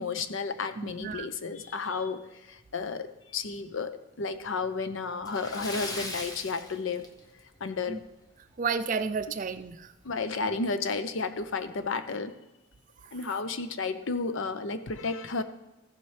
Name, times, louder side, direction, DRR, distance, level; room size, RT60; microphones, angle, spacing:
voice 1, 0.0-3.9 4.2-7.1 7.6-8.0 10.0-12.3 13.1-15.4, left 4 dB, 65° left, 10 dB, 0.6 m, -32 dB
voice 2, 0.8-1.3 7.9-8.0 8.6-9.9 13.0-13.1, right 5 dB, 40° right, 12 dB, 0.4 m, -32 dB
Splash splatter, 5.2-7.6 7.9-8.1 8.5-8.6 10.0-10.1 10.5-10.6 11.2-11.4, left 2 dB, 20° left, 0.7 m, -39 dB
14.0 x 7.1 x 3.2 m, 0.98 s
head